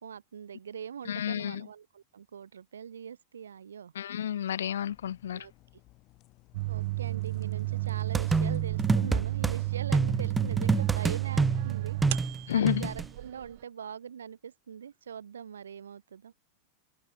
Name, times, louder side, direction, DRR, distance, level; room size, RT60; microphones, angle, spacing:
voice 1, 0.0-3.9 5.3-5.5 6.7-12.0 12.5-16.3, right 8 dB, 70° right, 2.2 m, -42 dB
voice 2, 1.1-1.7 3.9-5.5 12.5-12.9, left 10 dB, 65° left, 1.3 m, -30 dB
sound 1, 4.8-9.8, left 20 dB, 40° left, 6.5 m, -60 dB
sound 2, 6.5-13.6, right 21 dB, 50° right, 1.6 m, -32 dB
sound 3, 8.1-9.6 9.9-13.1, right 3 dB, 10° right, 0.7 m, -28 dB
open air
figure-of-eight pair, 90°, 0 cm